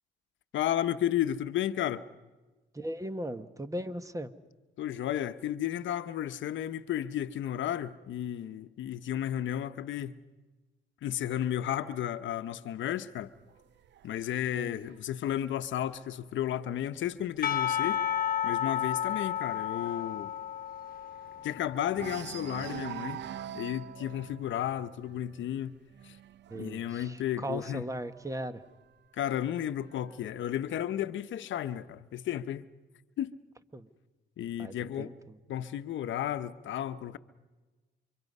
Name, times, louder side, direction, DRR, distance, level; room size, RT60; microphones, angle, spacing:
voice 1, 0.5-2.0 4.8-10.2 11.0-13.3 14.0-18.0 18.4-20.3 21.4-23.3 23.5-25.8 26.0-26.2 26.5-27.9 29.1-32.6 33.2-33.3 34.4-35.1 35.5-37.2, left 11 dB, 70° left, 0.9 m, -33 dB
voice 2, 2.7-4.3 14.5-14.8 26.5-28.6 33.7-33.9 34.6-35.4, right 1 dB, 15° right, 1.4 m, -38 dB
sound 1, 13.2-16.8 17.2-17.5 17.8-17.9 18.3-21.5 21.9-28.4 29.3-30.3, right 10 dB, 65° right, 0.7 m, -46 dB
Percussion / Church bell, 17.4-22.5, left 10 dB, 45° left, 1.2 m, -32 dB
28.5 x 25.0 x 5.5 m
cardioid pair, 90°, 20 cm